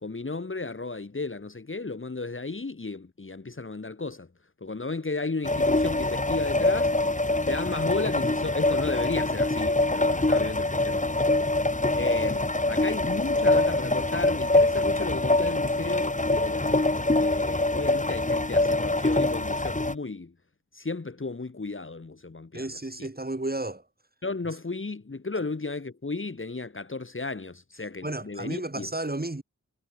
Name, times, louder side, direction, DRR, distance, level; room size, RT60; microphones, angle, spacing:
voice 1, 0.0-4.3 4.6-6.9 7.2-11.2 11.9-20.3 20.7-22.7 23.0-23.1 24.2-28.9, left 3 dB, 40° left, 1.6 m, -34 dB
sound 1, 5.4-19.9, left 2 dB, 25° left, 2.2 m, -24 dB
voice 2, 22.5-23.8 28.0-29.4, right 2 dB, 30° right, 4.8 m, -32 dB
wide cardioid pair, 50°, 31 cm